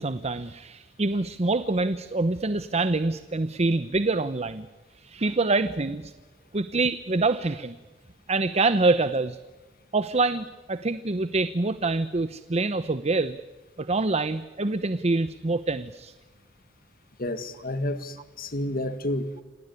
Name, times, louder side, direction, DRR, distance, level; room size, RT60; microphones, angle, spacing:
voice 1, 0.0-4.7 5.0-6.1 6.5-7.8 8.3-9.4 9.9-13.4 13.8-16.1, right 3 dB, 35° right, 13 dB, 0.8 m, -25 dB
voice 2, 17.2-19.3, left 1 dB, 50° left, 10 dB, 1.9 m, -30 dB
28.0 x 19.0 x 9.7 m, 1.2 s
head